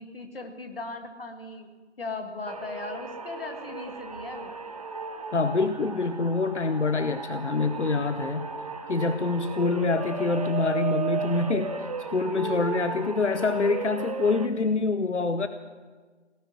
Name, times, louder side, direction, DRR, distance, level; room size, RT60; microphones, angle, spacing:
voice 1, 0.0-1.7 2.0-4.5, left 2 dB, 55° left, 5 dB, 2.2 m, -38 dB
sound 1, 2.5-14.5, right 5 dB, 30° right, 0.8 m, -35 dB
voice 2, 5.3-8.5 8.9-11.7 12.1-15.5, left 3 dB, 75° left, 11 dB, 0.9 m, -26 dB
18.0 x 8.1 x 9.6 m, 1.4 s
figure-of-eight pair, 155°, 35 cm